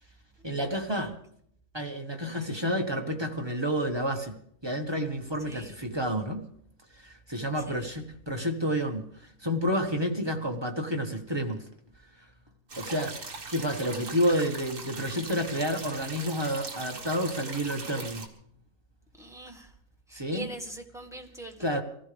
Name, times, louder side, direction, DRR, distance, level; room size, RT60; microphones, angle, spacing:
voice 1, 0.4-1.1 1.7-4.4 4.6-6.4 7.0-9.1 9.4-11.6 12.8-13.2 13.5-18.2 20.1-20.5 21.6-21.8, equal, 20° right, 3 dB, 1.2 m, -30 dB
voice 2, 5.5-5.8 7.6-7.9 19.2-19.7 20.1-21.8, equal, ahead, 2 dB, 1.7 m, -42 dB
sound 1, 12.7-18.3, right 3 dB, 60° right, 2.2 m, -40 dB
24.5 x 15.5 x 3.4 m, 0.68 s
omnidirectional pair, 1.6 m